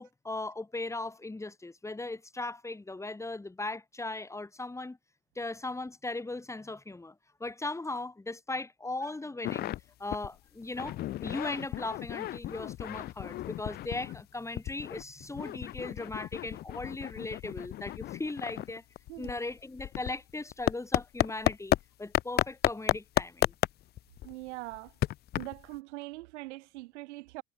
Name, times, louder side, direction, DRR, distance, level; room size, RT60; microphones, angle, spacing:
voice 1, 0.0-5.0 5.4-7.1 7.4-9.7 10.0-18.8 19.2-23.5, left 2 dB, 10° left, 5.5 m, -38 dB
sound 1, 9.4-9.8 10.1-10.3 10.6-14.2 14.6-21.8 22.1-25.8, left 14 dB, 30° left, 0.4 m, -32 dB
voice 2, 24.2-24.9 25.3-27.4, right 20 dB, 85° right, 1.6 m, -42 dB
supercardioid pair, 130°, 34 cm